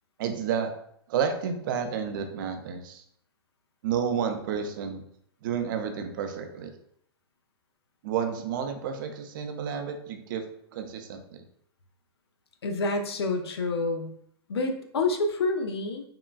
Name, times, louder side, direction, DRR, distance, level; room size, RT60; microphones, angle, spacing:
voice 1, 0.2-0.7 1.1-3.0 3.8-5.0 5.4-6.7 8.0-10.4 10.7-11.4, right 7 dB, 55° right, 6 dB, 0.5 m, -30 dB
voice 2, 12.6-14.1 14.5-16.0, left 3 dB, 85° left, 4 dB, 0.5 m, -28 dB
3.6 x 2.2 x 2.3 m, 0.69 s
hypercardioid pair, 120°, 13 cm